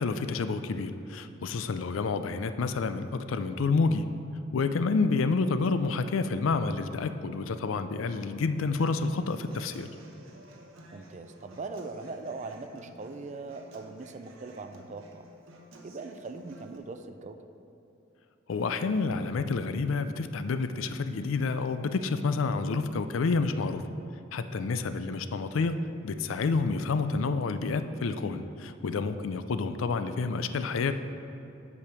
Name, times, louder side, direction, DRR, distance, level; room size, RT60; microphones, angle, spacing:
voice 1, 0.0-4.1 4.5-9.9 18.5-23.8 24.3-25.8 26.0-30.9, left 4 dB, 85° left, 10 dB, 0.4 m, -29 dB
Human voice / Acoustic guitar, 8.8-16.8, right 1 dB, 85° right, 1.0 m, -53 dB
voice 2, 10.9-15.3 15.8-17.4 24.6-24.8 29.1-29.3, right 3 dB, 35° right, 9 dB, 0.4 m, -41 dB
8.3 x 5.2 x 6.0 m, 2.9 s
head